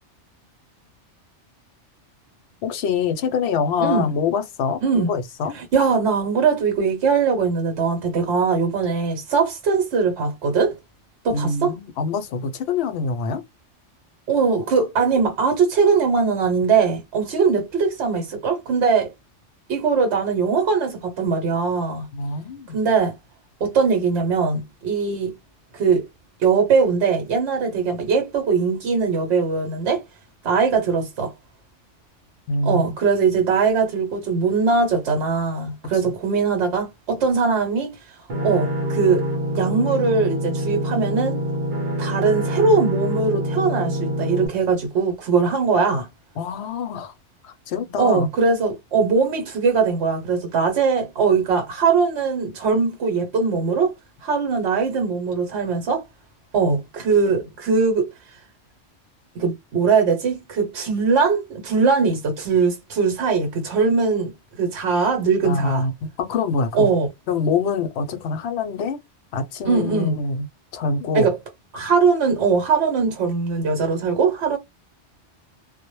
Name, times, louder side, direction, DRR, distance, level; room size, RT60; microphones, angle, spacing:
voice 1, 2.6-5.5 11.3-13.4 22.1-22.8 32.5-33.0 36.0-36.2 46.4-47.1 47.4-48.3 65.4-66.9 67.3-69.0 69.3-70.5 70.7-71.3, left 4 dB, 70° left, 0.8 m, -25 dB
voice 2, 3.8-4.1 4.8-5.1 5.5-10.8 11.2-11.7 14.3-19.1 19.7-22.1 22.7-23.1 23.6-25.3 25.7-26.0 26.4-30.0 30.4-31.3 32.6-38.2 38.4-39.3 39.5-41.4 42.0-46.1 48.0-53.9 54.2-56.0 56.5-58.1 59.3-64.3 64.6-65.9 66.7-67.1 69.6-70.2 71.1-71.4 71.7-74.6, right 5 dB, 70° right, 1.0 m, -21 dB
sound 1, 38.3-44.5, equal, 45° right, 0.8 m, -25 dB
2.1 x 2.1 x 2.9 m
omnidirectional pair, 1.2 m